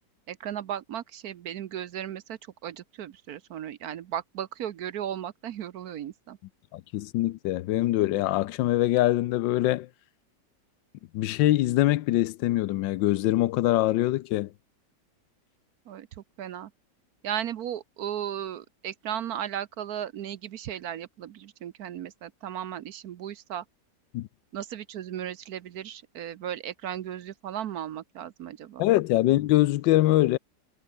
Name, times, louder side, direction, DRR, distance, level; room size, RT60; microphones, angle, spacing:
voice 1, 0.3-6.4 15.9-16.7 17.2-23.6 24.5-28.8, right 10 dB, 65° right, 1.1 m, -36 dB
voice 2, 6.7-9.9 11.1-14.5 24.1-24.3 28.8-30.4, left 15 dB, 90° left, 1.3 m, -23 dB
omnidirectional pair, 2.0 m